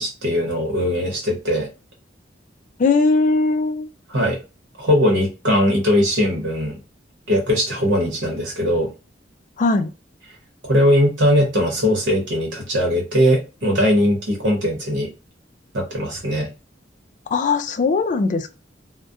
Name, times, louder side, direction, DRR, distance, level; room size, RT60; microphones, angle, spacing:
voice 1, 0.0-1.7 4.1-4.4 4.8-6.7 7.3-8.9 10.6-15.1 15.7-16.5, equal, 85° right, 0 dB, 0.9 m, -20 dB
voice 2, 2.8-3.9 9.6-9.9 17.3-18.5, left 3 dB, 45° left, 9 dB, 0.3 m, -19 dB
2.3 x 2.1 x 2.6 m, 0.30 s
head